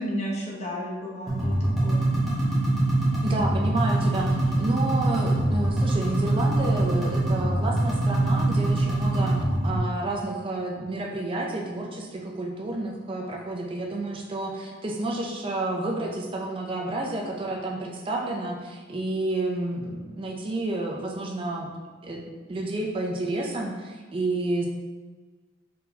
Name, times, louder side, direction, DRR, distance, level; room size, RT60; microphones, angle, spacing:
voice 1, 0.0-2.1, equal, 35° left, -4 dB, 0.9 m, -32 dB
sound 1, 1.3-9.8, right 1 dB, ahead, 1.1 m, -24 dB
voice 2, 3.2-21.7 22.0-22.2 22.5-24.7, right 2 dB, 30° right, -1 dB, 0.4 m, -30 dB
4.0 x 3.9 x 2.7 m, 1.4 s
head